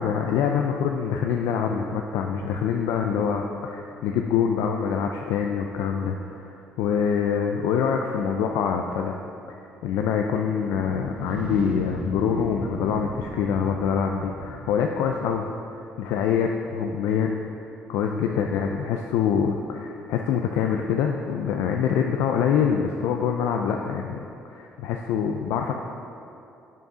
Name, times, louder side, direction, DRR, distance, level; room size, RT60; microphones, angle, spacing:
voice 1, 0.0-9.2 9.5-9.6 9.8-15.5 15.7-17.4 17.9-25.7, left 7 dB, 80° left, 3 dB, 0.4 m, -25 dB
sound 1, 10.5-15.4, right 2 dB, 30° right, 1.4 m, -37 dB
7.1 x 5.6 x 6.1 m, 2.7 s
supercardioid pair, 60°, 5 cm